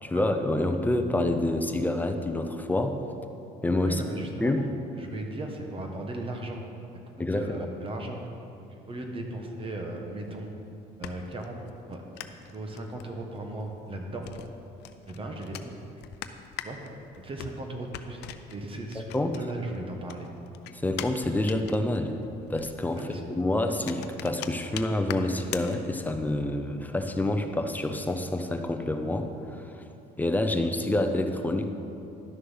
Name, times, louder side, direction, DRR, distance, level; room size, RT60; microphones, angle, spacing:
voice 1, 0.0-3.0 3.6-4.0 4.4-4.6 7.2-7.7 18.9-19.4 20.7-22.2 22.5-29.8 30.2-31.7, left 1 dB, 10° left, 6 dB, 0.7 m, -27 dB
voice 2, 3.8-4.5 4.9-6.6 6.9-8.2 8.6-10.5 11.0-11.6 11.9-14.3 15.1-16.0 16.6-16.8 17.1-18.2 18.5-20.3 22.9-23.2, right 2 dB, 30° right, 2 dB, 1.3 m, -37 dB
sound 1, 10.6-19.8 20.0-26.3, left 11 dB, 85° left, 0.6 m, -43 dB
11.5 x 6.5 x 5.7 m, 2.7 s
cardioid pair, 110°, 17 cm